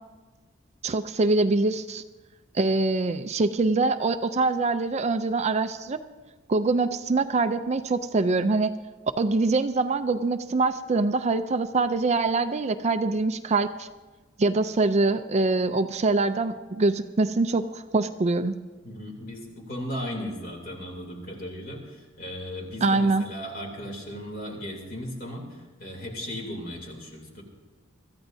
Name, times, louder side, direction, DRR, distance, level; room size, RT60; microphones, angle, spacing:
voice 1, 0.8-2.0 2.5-6.0 6.5-8.7 9.2-13.9 14.4-18.6 22.8-23.3, right 3 dB, 35° right, 9 dB, 0.4 m, -24 dB
voice 2, 18.8-27.4, equal, 45° left, 0 dB, 3.1 m, -36 dB
24.0 x 14.0 x 2.7 m, 1.3 s
head